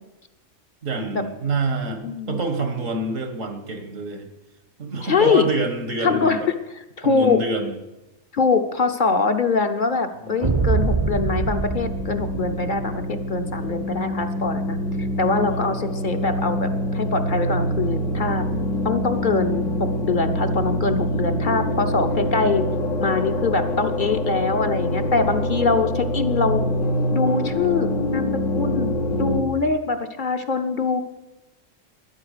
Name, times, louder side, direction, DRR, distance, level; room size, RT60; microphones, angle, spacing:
voice 1, 0.8-2.0 2.3-4.3 4.8-6.5 7.0-7.8 10.2-10.5 15.4-15.5, right 3 dB, 85° right, 7 dB, 1.9 m, -27 dB
voice 2, 2.0-2.4 5.0-5.5 6.0-6.4 7.0-7.4 8.3-18.5 18.8-22.7 23.0-26.6 27.1-28.9 29.2-31.0, left 4 dB, 45° left, 7 dB, 0.8 m, -23 dB
sound 1, 10.4-13.0, right 5 dB, 35° right, 0.6 m, -24 dB
sound 2, 10.6-29.4, equal, 85° left, 1.9 m, -25 dB
12.5 x 9.9 x 6.6 m, 1.0 s
omnidirectional pair, 1.3 m